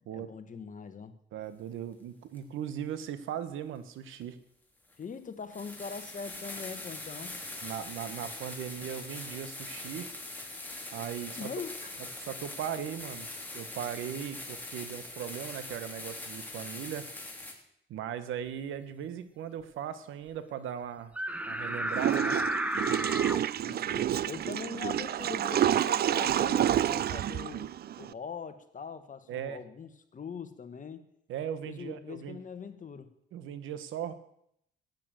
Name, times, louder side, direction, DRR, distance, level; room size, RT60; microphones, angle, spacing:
voice 1, 0.1-1.2 5.0-7.4 8.8-8.9 11.3-12.0 23.6-27.7 28.0-31.0 31.7-33.1, left 6 dB, 40° left, 10 dB, 1.5 m, -42 dB
voice 2, 1.3-4.4 7.6-10.1 10.9-11.5 12.2-13.3 13.5-17.1 17.9-21.1 21.5-22.4 29.3-29.6 31.3-32.4 33.3-34.1, right 9 dB, 85° right, 13 dB, 1.3 m, -38 dB
sound 1, 2.3-2.4 4.2-4.3 4.9-5.0 5.5-17.5, left 2 dB, 10° left, 3.3 m, -42 dB
sound 2, 21.2-23.4, right 1 dB, 5° right, 1.1 m, -32 dB
Water / Toilet flush, 21.9-28.1, right 11 dB, 55° right, 0.5 m, -28 dB
14.5 x 9.1 x 7.7 m, 0.75 s
cardioid pair, 90°, 20 cm